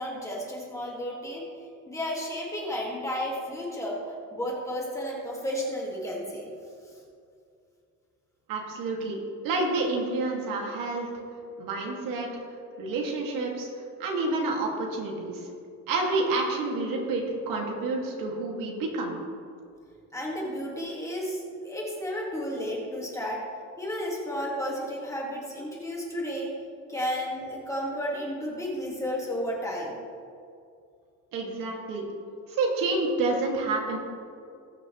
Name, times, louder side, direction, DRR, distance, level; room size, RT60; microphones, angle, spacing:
voice 1, 0.0-1.4 1.9-6.5 20.1-23.4 23.8-26.5 26.9-30.0, equal, 10° left, -4 dB, 2.0 m, -32 dB
voice 2, 8.5-11.1 11.6-12.3 12.8-13.7 14.0-15.5 15.9-19.1 31.3-32.1 32.5-34.0, right 3 dB, 80° right, -1 dB, 2.3 m, -29 dB
20.0 x 6.8 x 3.2 m, 2.4 s
cardioid pair, 175°, 33 cm